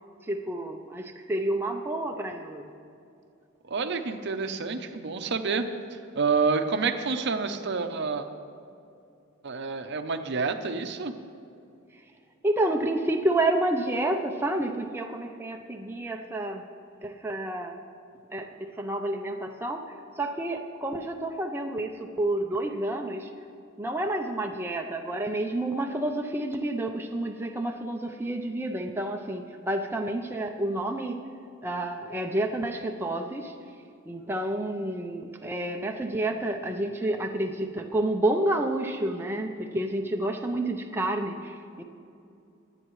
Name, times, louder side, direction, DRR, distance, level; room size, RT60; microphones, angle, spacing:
voice 1, 0.2-2.7 12.4-16.6 17.0-17.8 18.3-23.3 23.8-31.2 31.6-33.5 34.1-41.8, right 1 dB, 10° right, 2 dB, 0.6 m, -29 dB
voice 2, 3.6-8.3 9.4-11.1, right 4 dB, 55° right, 7 dB, 0.7 m, -28 dB
22.5 x 8.7 x 3.2 m, 2.6 s
head